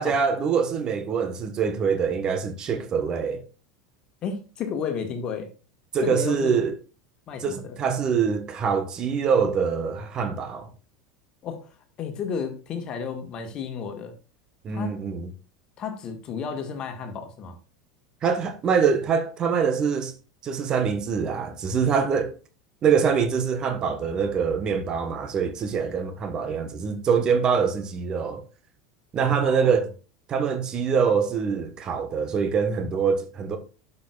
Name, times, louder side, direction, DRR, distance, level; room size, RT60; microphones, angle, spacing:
voice 1, 0.0-3.4 5.9-6.7 7.4-10.7 14.6-15.3 18.2-20.1 20.4-22.3 22.8-28.4 29.1-29.9 30.3-33.6, right 6 dB, 35° right, 1.1 m, -24 dB
voice 2, 4.2-5.5 6.0-6.6 7.3-7.8 11.4-11.7 12.0-14.1 14.7-15.0 15.8-17.6 29.2-29.8, left 6 dB, 40° left, 1.6 m, -32 dB
11.5 x 5.5 x 2.4 m
figure-of-eight pair, 80°, 2 cm